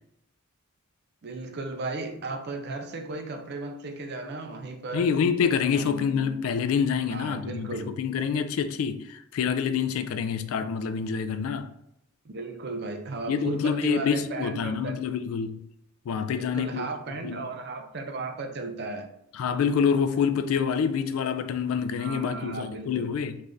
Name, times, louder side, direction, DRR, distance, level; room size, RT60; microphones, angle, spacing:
voice 1, 1.2-5.1 5.8-6.2 7.1-8.0 12.2-15.0 16.4-19.1 22.0-23.1, right 3 dB, 45° right, 0.4 m, -35 dB
voice 2, 4.9-7.7 8.0-11.7 13.3-15.6 16.1-16.9 17.2-17.4 19.3-23.4, left 6 dB, 70° left, 0.3 m, -27 dB
3.5 x 3.2 x 2.6 m
head